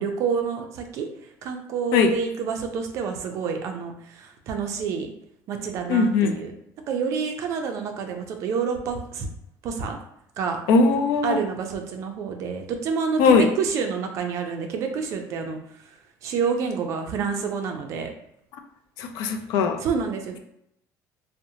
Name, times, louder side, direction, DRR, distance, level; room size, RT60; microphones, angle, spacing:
voice 1, 0.0-5.1 5.5-6.5 6.9-9.3 9.6-10.0 10.4-10.6 11.2-15.9 16.2-18.1 19.8-20.4, right 6 dB, 45° right, 4 dB, 0.4 m, -28 dB
voice 2, 5.9-6.3 10.7-11.4 13.2-13.5 19.0-19.8, left 4 dB, 70° left, 6 dB, 0.3 m, -19 dB
2.7 x 2.0 x 2.7 m, 0.76 s
cardioid pair, 170°, 7 cm